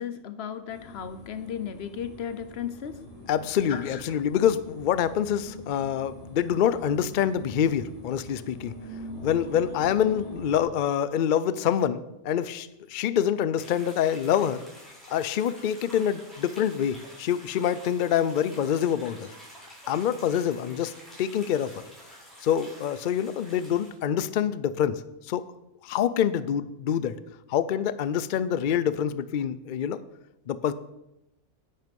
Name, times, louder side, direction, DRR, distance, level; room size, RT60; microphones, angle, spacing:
voice 1, 0.0-3.0 3.7-4.0, left 8 dB, 55° left, 12 dB, 0.9 m, -35 dB
sound 1, 0.7-10.6, equal, 35° left, 3.8 m, -44 dB
voice 2, 3.3-8.8 9.2-14.6 15.1-19.3 19.9-20.9 21.2-21.8 22.4-25.0 25.3-25.4 25.8-27.2 27.5-30.0 30.5-30.7, left 9 dB, 80° left, 15 dB, 0.4 m, -26 dB
sound 2, 13.6-23.9, equal, ahead, 5.2 m, -49 dB
10.0 x 9.5 x 5.3 m, 0.90 s
omnidirectional pair, 1.5 m